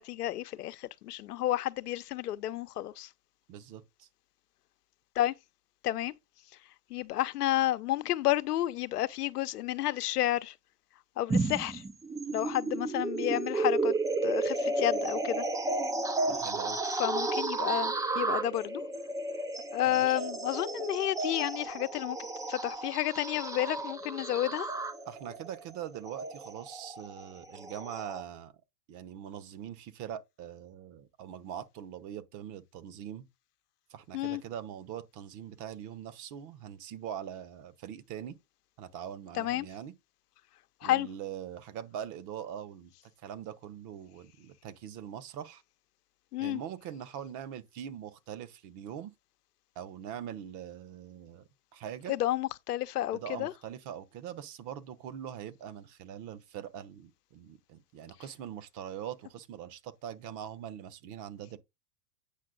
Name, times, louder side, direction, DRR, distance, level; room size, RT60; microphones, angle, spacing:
voice 1, 0.0-3.1 5.2-5.3 5.8-6.1 6.9-10.5 11.2-11.8 12.3-13.9 14.2-15.4 17.0-18.8 19.7-22.2 22.5-24.7 34.1-34.4 39.4-39.7 40.8-41.1 46.3-46.6 52.1-53.5, left 14 dB, 70° left, 0.8 m, -31 dB
voice 2, 3.5-4.1 16.3-16.8 19.9-20.2 25.1-28.5 28.9-33.2 33.9-38.4 38.8-39.9 40.8-45.6 46.4-49.1 49.7-52.2 53.1-61.6, right 9 dB, 40° right, 1.1 m, -42 dB
sound 1, 11.3-28.2, right 2 dB, 10° right, 0.5 m, -33 dB
8.6 x 5.9 x 3.8 m
hypercardioid pair, 100°, 47 cm